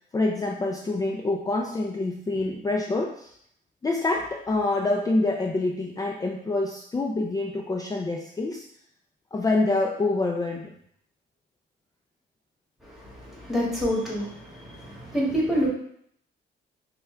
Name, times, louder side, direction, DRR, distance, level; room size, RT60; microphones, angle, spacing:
voice 1, 0.1-3.3 3.8-8.6 9.3-10.7, left 2 dB, 20° left, 0 dB, 0.4 m, -26 dB
voice 2, 12.8-15.7, equal, ahead, -5 dB, 1.7 m, -28 dB
5.7 x 2.3 x 3.3 m, 0.68 s
cardioid pair, 90°, 20 cm